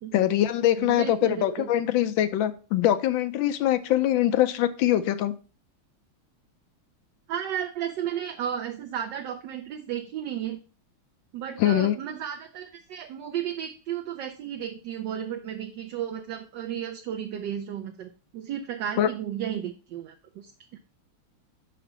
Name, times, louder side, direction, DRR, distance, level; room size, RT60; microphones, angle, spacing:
voice 1, 0.1-5.3 11.6-12.0 19.0-19.1, left 12 dB, 75° left, 12 dB, 1.3 m, -23 dB
voice 2, 0.8-1.7 7.3-10.6 11.3-20.8, right 9 dB, 70° right, 4 dB, 1.2 m, -33 dB
5.8 x 5.1 x 5.4 m, 0.36 s
omnidirectional pair, 2.3 m